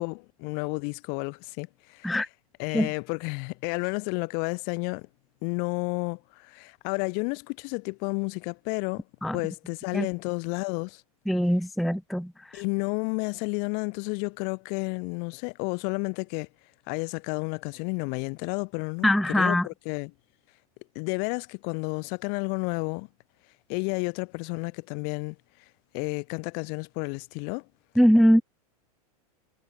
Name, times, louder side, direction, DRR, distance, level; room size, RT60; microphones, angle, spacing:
voice 1, 0.0-2.2 2.6-5.1 5.4-9.0 9.3-11.0 12.5-16.5 16.9-20.1 20.9-23.1 23.7-25.3 25.9-27.6, left 39 dB, 50° left, 1.6 m, -31 dB
voice 2, 11.3-12.3 19.0-19.7 28.0-28.4, equal, ahead, 0.4 m, -21 dB
hypercardioid pair, 115°, 20 cm